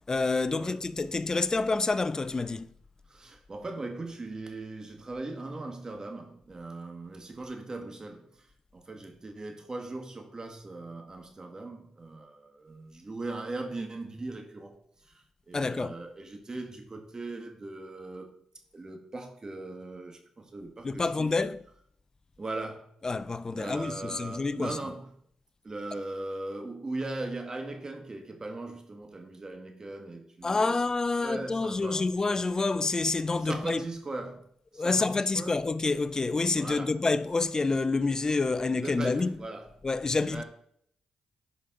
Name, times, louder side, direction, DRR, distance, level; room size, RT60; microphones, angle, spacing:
voice 1, 0.1-2.7 15.5-15.9 20.8-21.6 23.0-24.8 30.4-33.8 34.7-39.5 39.8-40.4, left 3 dB, 30° left, 0.5 m, -28 dB
voice 2, 3.1-8.5 8.7-18.3 18.7-21.3 22.4-22.9 23.6-25.1 25.6-30.8 31.1-32.1 33.4-34.4 34.7-35.5 36.6-37.0 38.8-39.7 40.2-40.4, right 2 dB, 35° right, 1.8 m, -39 dB
11.0 x 5.2 x 3.8 m
supercardioid pair, 55°, 2 cm